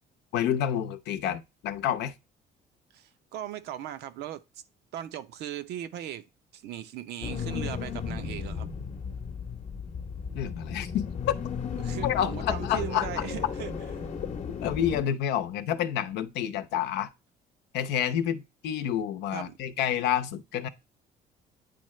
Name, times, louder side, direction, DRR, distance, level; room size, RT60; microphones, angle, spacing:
voice 1, 0.3-2.1 10.3-11.0 12.0-13.3 14.6-17.1 17.7-20.7, left 10 dB, 85° left, 0.7 m, -29 dB
voice 2, 2.9-4.4 4.9-6.3 6.5-8.7 11.8-13.7 19.3-19.6, right 11 dB, 80° right, 0.7 m, -38 dB
sound 1, 7.2-15.0, left 6 dB, 45° left, 0.8 m, -35 dB
9.3 x 3.8 x 3.1 m
cardioid pair, 110°, 17 cm